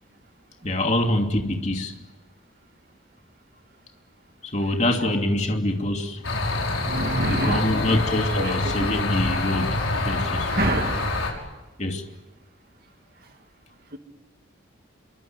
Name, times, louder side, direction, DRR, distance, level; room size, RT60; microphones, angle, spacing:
voice 1, 0.6-1.9 4.4-6.2 7.2-9.8 10.0-10.5 11.8-12.0, left 1 dB, 35° left, 2.8 m, -25 dB
sound 1, 6.2-11.3, left 2 dB, 90° left, 6.3 m, -26 dB
voice 2, 6.8-8.0 8.4-9.1 9.8-9.9 10.5-11.1 13.9-14.0, right 2 dB, 50° right, 2.2 m, -28 dB
27.0 x 24.0 x 9.2 m
head